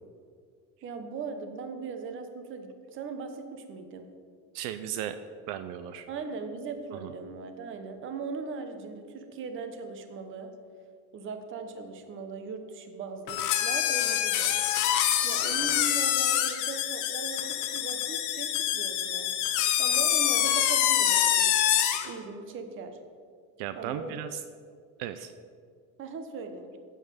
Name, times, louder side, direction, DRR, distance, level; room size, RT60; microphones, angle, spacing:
voice 1, 0.8-4.1 6.1-10.5 11.1-14.5 15.2-19.3 19.8-21.5 22.1-23.0 23.7-24.2 26.0-26.7, right 4 dB, 35° right, 7 dB, 0.9 m, -39 dB
voice 2, 4.5-5.2 5.5-6.1 7.0-7.1 23.6-24.4 25.0-25.3, right 11 dB, 75° right, 10 dB, 0.5 m, -35 dB
sound 1, 13.3-22.1, left 11 dB, 55° left, 0.9 m, -26 dB
7.8 x 7.1 x 6.4 m, 2.1 s
cardioid pair, 165°, 37 cm